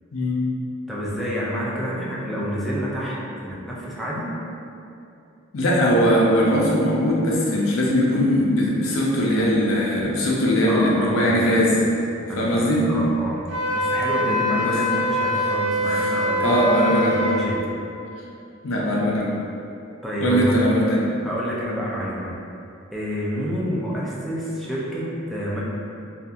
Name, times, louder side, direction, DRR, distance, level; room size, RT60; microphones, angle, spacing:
voice 1, 0.9-3.2 3.4-4.3 10.7-11.4 12.3-16.6 17.0-17.6 20.0-20.5 21.2-22.3 22.9-25.6, equal, ahead, -7 dB, 0.3 m, -28 dB
voice 2, 5.5-11.8 12.4-12.9 14.2-14.8 15.9-16.1 16.4-17.3 18.6-19.3 20.2-21.1, equal, 75° left, -4 dB, 0.5 m, -20 dB
Wind instrument woodwind instrument, 13.5-17.4, equal, 55° right, 0.7 m, -23 dB
2.7 x 2.4 x 2.4 m, 2.6 s
head